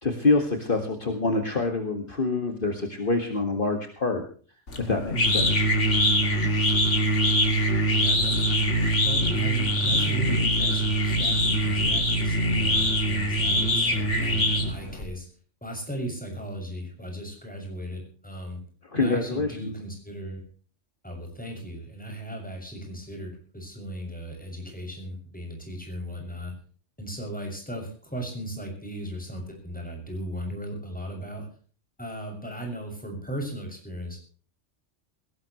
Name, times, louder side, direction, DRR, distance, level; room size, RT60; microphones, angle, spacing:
voice 1, 0.0-4.2 4.8-5.7 18.9-19.6, left 3 dB, 45° left, 5 dB, 2.2 m, -26 dB
sound 1, 4.7-15.0, equal, 80° left, 3.0 m, -23 dB
voice 2, 7.9-8.4 9.0-15.3 15.6-18.6 18.9-20.4 21.0-26.5 27.0-31.5 32.0-34.2, right 1 dB, 5° left, 1 dB, 6.9 m, -37 dB
20.5 x 18.0 x 3.2 m, 0.42 s
omnidirectional pair, 1.2 m